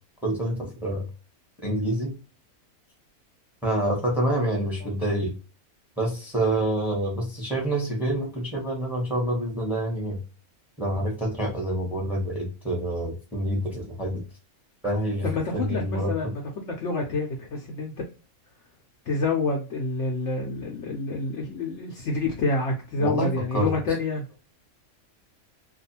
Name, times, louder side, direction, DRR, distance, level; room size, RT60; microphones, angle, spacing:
voice 1, 0.2-1.1 1.6-2.2 3.6-5.3 6.0-10.2 10.8-14.2 14.8-15.3 15.5-16.3 23.0-23.7, right 1 dB, ahead, -1 dB, 0.9 m, -27 dB
voice 2, 15.2-17.9 19.1-24.2, left 3 dB, 65° left, 1 dB, 0.8 m, -28 dB
2.5 x 2.3 x 2.7 m, 0.32 s
omnidirectional pair, 1.6 m